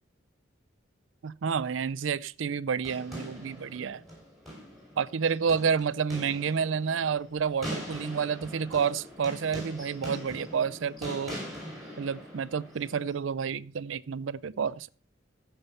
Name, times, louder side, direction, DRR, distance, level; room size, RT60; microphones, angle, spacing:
voice 1, 1.2-4.0 5.0-11.4 12.0-14.9, right 6 dB, 80° right, 0.4 m, -30 dB
sound 1, 2.8-13.1, equal, ahead, 5.6 m, -42 dB
14.5 x 5.6 x 5.4 m
head